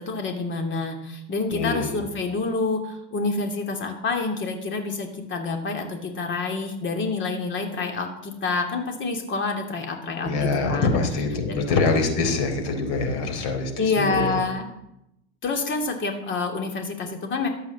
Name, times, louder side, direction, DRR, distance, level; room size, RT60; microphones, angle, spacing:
voice 1, 0.0-11.0 11.5-11.6 13.8-14.7 15.4-17.5, left 3 dB, 35° left, 3 dB, 2.8 m, -27 dB
voice 2, 1.5-2.0 10.2-14.4, left 3 dB, 60° left, 4 dB, 3.9 m, -24 dB
13.0 x 8.3 x 7.4 m, 0.83 s
hypercardioid pair, 95°, 35 cm